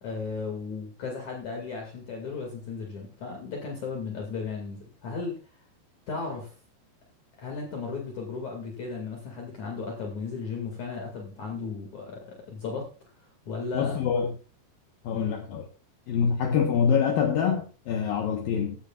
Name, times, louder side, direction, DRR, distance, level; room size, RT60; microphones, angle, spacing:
voice 1, 0.0-5.4 6.1-6.5 7.4-12.9 13.5-14.0 15.1-15.4, left 4 dB, 45° left, 3.3 m, -35 dB
voice 2, 13.7-14.3 15.0-15.6 16.1-18.8, left 7 dB, 65° left, 2.7 m, -25 dB
15.5 x 13.0 x 2.5 m
omnidirectional pair, 5.0 m